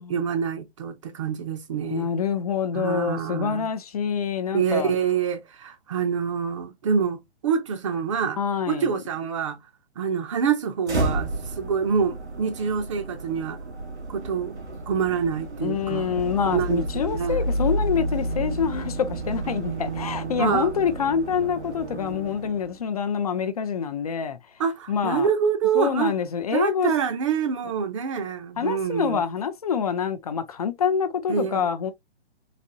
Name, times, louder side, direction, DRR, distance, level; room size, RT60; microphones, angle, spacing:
voice 1, 0.0-2.1 2.7-3.7 4.5-8.4 8.7-9.6 10.0-13.6 14.1-14.5 14.9-16.1 16.5-17.5 20.4-20.7 24.6-26.1 26.5-29.2 31.3-31.7, right 6 dB, 30° right, 0.6 m, -26 dB
voice 2, 1.9-4.9 8.4-8.9 15.6-24.4 24.9-25.3 25.7-26.9 28.6-31.9, left 7 dB, 35° left, 0.5 m, -26 dB
sound 1, 10.8-22.8, right 2 dB, 85° right, 2.2 m, -31 dB
4.1 x 2.6 x 2.6 m
hypercardioid pair, 160°, 33 cm